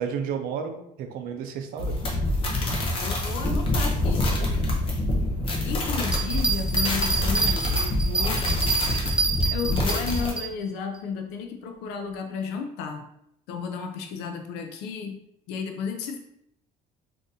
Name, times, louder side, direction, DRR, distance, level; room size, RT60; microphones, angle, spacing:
voice 1, 0.0-2.2 8.8-9.0, right 7 dB, 60° right, 6 dB, 0.5 m, -32 dB
sound 1, 1.8-10.3, left 1 dB, 35° left, 0.7 m, -26 dB
voice 2, 3.0-4.4 5.6-8.5 8.9-9.0 9.5-13.0 13.5-15.2 15.5-16.2, left 6 dB, 85° left, 5 dB, 0.4 m, -33 dB
Bell, 6.0-10.5 10.9-11.0, right 3 dB, 5° right, 0.4 m, -26 dB
3.6 x 2.5 x 2.6 m, 0.77 s
cardioid pair, 160°, 17 cm